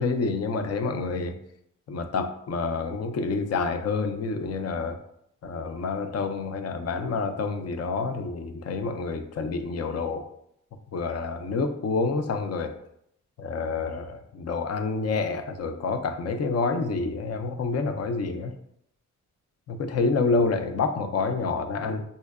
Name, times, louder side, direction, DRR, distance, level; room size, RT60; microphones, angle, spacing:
voice 1, 0.0-1.4 1.9-5.0 5.4-10.2 10.9-12.7 13.4-18.5 19.7-22.0, left 4 dB, 50° left, 8 dB, 0.5 m, -28 dB
5.3 x 2.1 x 2.3 m, 0.73 s
wide cardioid pair, 110°, 32 cm